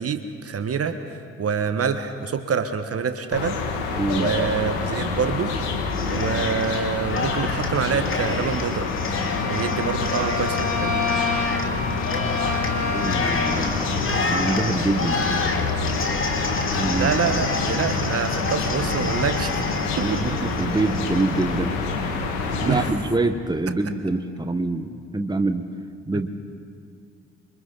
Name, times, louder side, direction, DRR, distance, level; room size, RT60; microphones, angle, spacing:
voice 1, 0.0-3.6 4.1-5.5 6.1-8.9 9.4-11.1 16.9-19.6 20.0-20.2 22.6-22.8, right 6 dB, 45° right, 8 dB, 1.5 m, -26 dB
sound 1, 3.3-22.9, left 4 dB, 75° left, 1.9 m, -27 dB
voice 2, 4.0-4.4 12.9-15.5 16.7-17.4 19.9-21.8 22.6-25.6 26.1-26.3, right 2 dB, 10° right, 7 dB, 1.4 m, -25 dB
Cheering, 5.9-6.8 7.1-21.5, left 3 dB, 35° left, 2.6 m, -30 dB
Bowed string instrument, 8.8-13.8, left 4 dB, 55° left, 3.3 m, -28 dB
28.0 x 25.0 x 4.1 m, 2.2 s
figure-of-eight pair, 45°, 34 cm